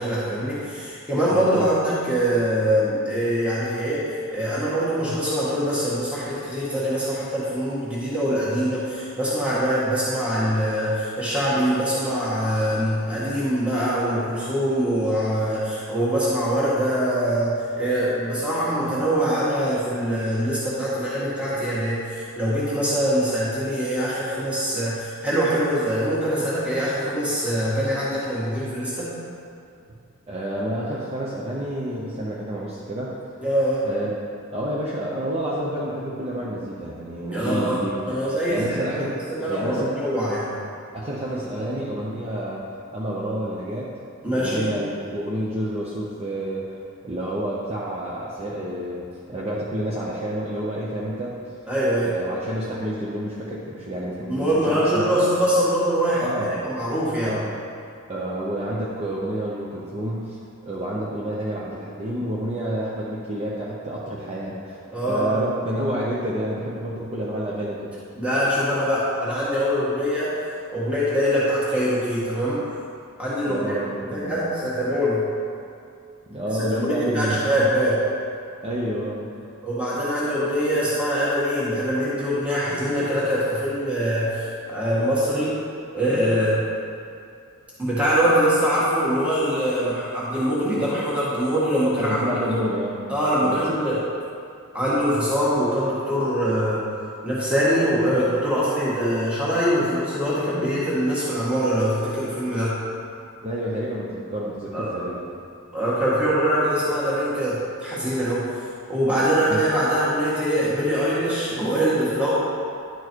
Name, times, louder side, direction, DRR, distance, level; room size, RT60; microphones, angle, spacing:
voice 1, 0.0-29.2 33.4-33.8 37.3-40.5 44.2-44.7 51.7-52.1 54.3-56.3 56.6-57.4 64.9-65.4 68.2-70.4 70.7-72.6 73.2-73.8 74.1-75.2 76.5-76.6 76.8-78.0 79.6-85.6 85.9-86.6 87.8-92.4 93.1-94.0 94.7-96.8 97.2-102.7 104.7-104.9 105.7-108.5 108.9-112.3, equal, 5° right, -10 dB, 1.8 m, -23 dB
voice 2, 1.3-1.7 30.3-33.2 33.8-34.2 34.5-38.2 38.5-39.2 39.5-40.0 40.9-42.6 42.9-43.9 44.2-51.4 52.0-55.1 56.2-56.6 57.2-57.5 58.1-64.8 65.1-67.9 73.5-74.4 76.3-77.7 78.6-79.3 92.0-93.0 93.4-93.8 103.4-105.3 109.5-109.6, right 1 dB, 30° right, -6 dB, 0.8 m, -29 dB
11.0 x 4.6 x 4.6 m, 2.4 s
head